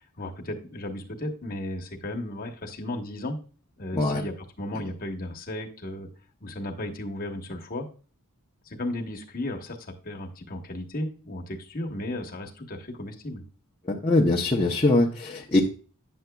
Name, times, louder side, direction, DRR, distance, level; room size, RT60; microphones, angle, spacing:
voice 1, 0.2-3.4 3.8-6.1 6.4-7.9 8.7-13.4, left 1 dB, 40° left, 2 dB, 1.1 m, -35 dB
voice 2, 13.9-15.6, left 2 dB, 25° left, -3 dB, 0.6 m, -22 dB
9.2 x 6.8 x 2.2 m, 0.38 s
head